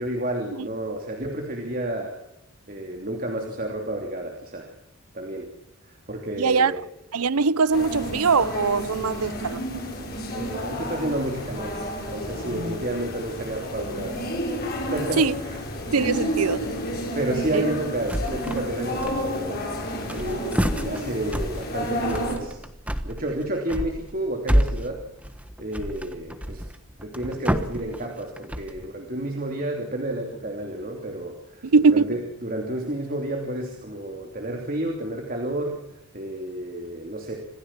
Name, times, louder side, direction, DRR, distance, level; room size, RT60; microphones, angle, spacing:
voice 1, 0.0-2.1 2.7-4.7 5.1-5.5 6.1-6.8 10.3-11.8 12.1-14.2 14.9-15.6 17.1-19.6 20.1-22.6 23.0-25.0 25.6-26.6 27.0-35.8 36.1-37.4, right 1 dB, 40° right, 3.0 m, -30 dB
voice 2, 6.4-6.7 7.1-9.6 15.2-15.3 15.9-16.7 17.5-17.6 31.6-32.2, right 4 dB, 80° right, 0.7 m, -21 dB
sound 1, 7.7-22.4, equal, 45° left, 7.0 m, -31 dB
sound 2, 18.1-18.7 18.9-19.6 19.9-28.9, equal, 5° right, 1.2 m, -29 dB
27.0 x 15.5 x 7.5 m
head